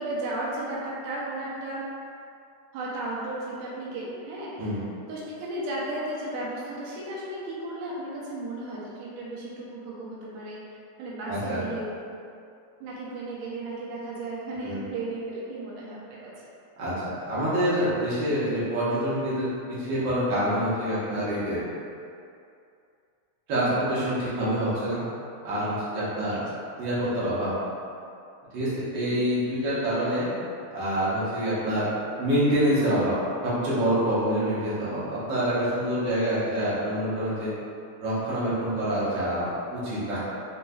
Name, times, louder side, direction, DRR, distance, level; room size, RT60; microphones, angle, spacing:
voice 1, 0.0-1.9 2.7-10.6 11.0-11.9 12.8-16.5 23.5-23.7 29.0-29.2, right 2 dB, 85° right, -6 dB, 2.0 m, -34 dB
voice 2, 11.2-11.6 14.6-14.8 16.8-19.5 19.8-21.6 23.5-25.0 25.4-26.4 26.8-27.5 28.5-30.3 30.7-31.9 32.2-33.1 33.4-37.5 38.0-40.2, equal, 55° right, -10 dB, 1.5 m, -26 dB
5.0 x 3.1 x 2.2 m, 2.5 s
omnidirectional pair, 3.3 m